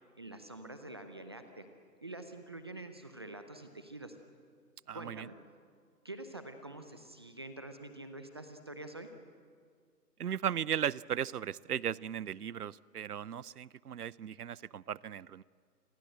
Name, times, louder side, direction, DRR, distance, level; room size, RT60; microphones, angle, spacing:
voice 1, 0.2-1.7 2.0-4.2 4.9-5.4 6.0-9.1, right 2 dB, 15° right, 8 dB, 0.6 m, -46 dB
voice 2, 4.9-5.3 10.2-15.4, right 9 dB, 65° right, 23 dB, 0.7 m, -36 dB
28.0 x 22.0 x 7.8 m, 2.1 s
figure-of-eight pair, 145°, 49 cm